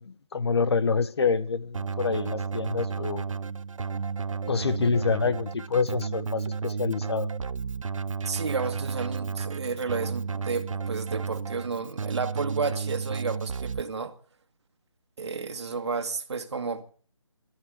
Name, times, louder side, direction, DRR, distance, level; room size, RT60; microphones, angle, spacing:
voice 1, 0.0-3.2 4.5-7.3, left 5 dB, 55° left, 1.2 m, -27 dB
Keyboard (musical), 1.7-13.8, right 5 dB, 80° right, 0.6 m, -32 dB
voice 2, 8.2-14.1 15.2-16.8, right 4 dB, 55° right, 1.8 m, -32 dB
18.0 x 13.0 x 5.1 m
figure-of-eight pair, 165°, 17 cm